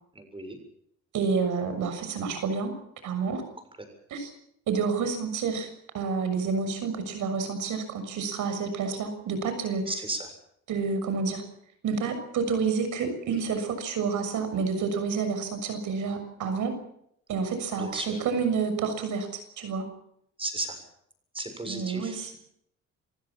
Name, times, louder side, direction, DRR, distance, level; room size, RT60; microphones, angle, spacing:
voice 1, 0.1-0.6 9.9-10.3 17.8-18.2 20.4-20.8 21.3-22.4, right 2 dB, 15° right, 7 dB, 7.2 m, -34 dB
voice 2, 1.1-2.7 3.0-3.4 4.1-4.3 4.7-5.7 5.9-9.8 10.7-11.4 11.8-16.7 17.3-19.9 21.7-22.4, right 5 dB, 80° right, 8 dB, 6.8 m, -29 dB
27.5 x 16.5 x 7.5 m, 0.75 s
cardioid pair, 90°, 30 cm